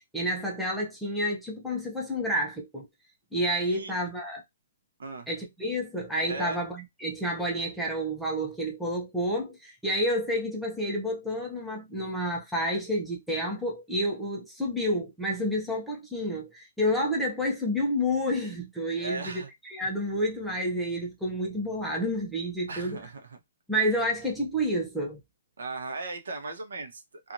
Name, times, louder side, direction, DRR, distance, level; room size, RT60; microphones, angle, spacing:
voice 1, 0.1-2.9 3.3-4.4 5.3-23.0 23.7-25.2, equal, ahead, 0.7 m, -29 dB
voice 2, 6.3-6.6 19.0-19.5 22.7-23.4 25.6-27.3, right 3 dB, 80° right, 0.9 m, -37 dB
2.9 x 2.4 x 2.6 m
hypercardioid pair, 170°, 0 cm